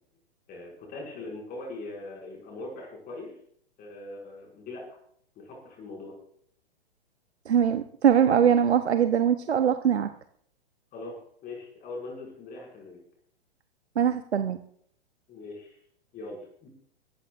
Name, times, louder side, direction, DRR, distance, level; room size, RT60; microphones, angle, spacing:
voice 1, 0.5-3.3 3.8-4.9 5.4-6.1 10.9-11.1 11.4-13.0 15.3-15.8 16.1-16.7, left 2 dB, 30° left, -1 dB, 5.9 m, -41 dB
voice 2, 7.5-10.1 14.0-14.6, right 8 dB, 75° right, 9 dB, 1.0 m, -22 dB
22.0 x 14.5 x 2.5 m, 0.64 s
hypercardioid pair, 115°, 32 cm